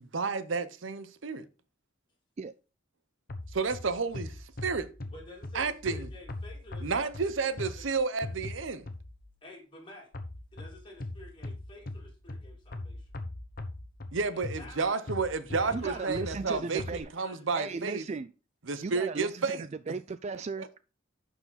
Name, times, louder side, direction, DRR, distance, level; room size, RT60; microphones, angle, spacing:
voice 1, 0.0-1.5 3.5-4.4 4.6-4.9 5.5-6.1 6.8-8.9 14.1-18.0 18.6-19.6 20.6-20.7, right 4 dB, 75° right, 0.7 m, -31 dB
sound 1, 3.3-9.3 10.1-17.0, left 2 dB, 50° left, 1.0 m, -41 dB
voice 2, 5.1-7.9 9.4-10.1 10.5-13.1 14.3-15.1 15.6-17.8, left 1 dB, 25° left, 2.8 m, -51 dB
voice 3, 15.7-17.1 17.6-18.3 18.8-20.8, right 4 dB, 35° right, 0.3 m, -36 dB
11.0 x 4.9 x 4.0 m
head